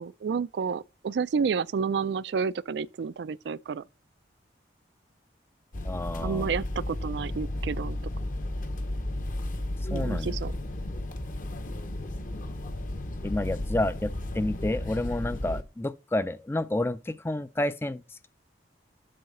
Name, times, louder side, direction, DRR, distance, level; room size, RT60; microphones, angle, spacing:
voice 1, 0.0-3.8 6.2-8.0 9.9-10.5, right 6 dB, 70° right, 0.3 m, -30 dB
sound 1, 5.7-15.6, left 1 dB, 45° left, 0.9 m, -33 dB
voice 2, 5.8-6.6 9.9-10.4 13.2-18.3, left 1 dB, 15° left, 0.3 m, -30 dB
7.7 x 5.6 x 5.3 m
head